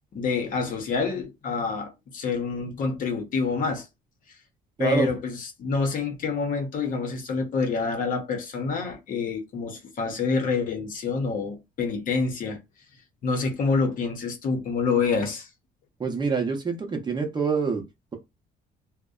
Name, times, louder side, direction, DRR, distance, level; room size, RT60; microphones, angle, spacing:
voice 1, 0.1-3.9 4.8-12.6 13.2-15.5, left 4 dB, 55° left, 0.8 m, -27 dB
voice 2, 16.0-17.8, right 5 dB, 25° right, 0.7 m, -26 dB
2.6 x 2.1 x 2.3 m
cardioid pair, 110°, 17 cm